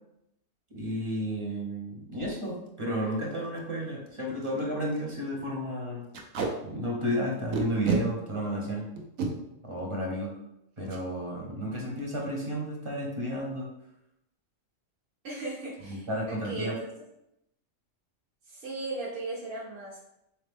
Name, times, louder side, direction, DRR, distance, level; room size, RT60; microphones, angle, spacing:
voice 1, 0.7-6.1 6.6-8.9 9.6-10.3 10.8-13.7 15.9-16.8, equal, 30° right, -2 dB, 0.7 m, -32 dB
Packing tape duct tape, 2.5-2.7 3.1-3.2 3.4-3.6 4.1-4.2 4.4-4.6 4.9-5.1 6.1-6.5 7.5-8.0 9.0-9.3 10.9-11.0 11.4-11.6 11.8-12.2, right 5 dB, 85° right, 1.1 m, -30 dB
voice 2, 15.2-16.8 18.5-20.0, right 2 dB, 60° right, -5 dB, 1.0 m, -37 dB
3.8 x 3.0 x 3.4 m, 0.83 s
omnidirectional pair, 1.3 m